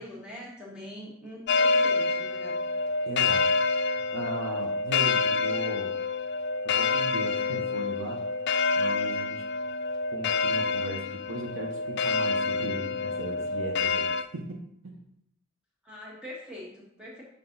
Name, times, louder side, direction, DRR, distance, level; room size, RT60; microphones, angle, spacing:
voice 1, 0.0-2.6 15.8-17.2, left 1 dB, 5° right, -5 dB, 1.8 m, -43 dB
sound 1, 1.5-14.2, left 4 dB, 50° left, 0.3 m, -27 dB
voice 2, 3.1-3.4 3.9-5.9 6.6-8.2 8.8-9.4 10.1-14.6 14.8-15.0, right 2 dB, 70° right, 2 dB, 1.0 m, -37 dB
5.9 x 5.4 x 3.9 m, 0.74 s
head